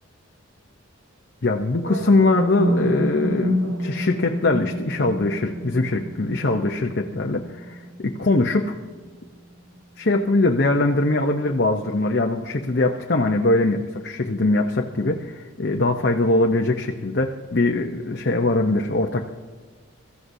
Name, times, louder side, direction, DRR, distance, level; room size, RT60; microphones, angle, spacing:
voice 1, 1.4-8.7 10.0-19.3, left 2 dB, 50° left, 1 dB, 0.7 m, -22 dB
sound 1, 1.8-9.8, equal, 85° right, 1.5 m, -29 dB
23.5 x 14.0 x 2.7 m, 1.5 s
head